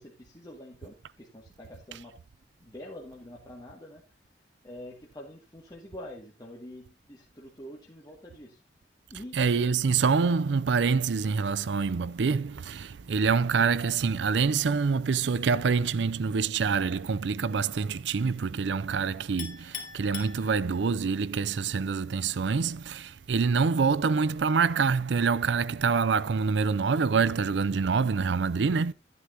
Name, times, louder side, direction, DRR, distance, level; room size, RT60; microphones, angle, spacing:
voice 1, 0.0-2.1 2.6-4.0 4.6-8.6 9.1-9.5, left 1 dB, 20° left, 2.0 m, -46 dB
voice 2, 9.3-28.9, right 5 dB, 70° right, 0.5 m, -26 dB
Chink clink, 19.4-21.1, left 7 dB, 45° left, 2.6 m, -41 dB
12.5 x 9.6 x 2.7 m
head